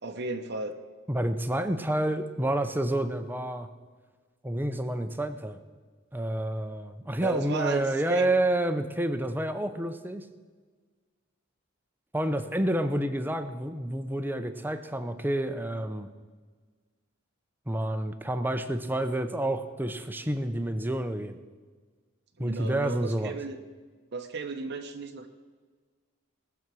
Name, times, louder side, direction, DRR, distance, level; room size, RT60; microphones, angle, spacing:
voice 1, 0.0-0.8 7.2-8.3 22.4-23.6 24.1-25.3, right 3 dB, 50° right, 6 dB, 0.8 m, -34 dB
voice 2, 1.1-3.7 4.4-5.6 6.1-10.3 12.1-16.1 17.7-21.4 22.4-23.3, right 1 dB, 10° right, 9 dB, 0.6 m, -29 dB
18.5 x 7.1 x 6.2 m, 1.5 s
head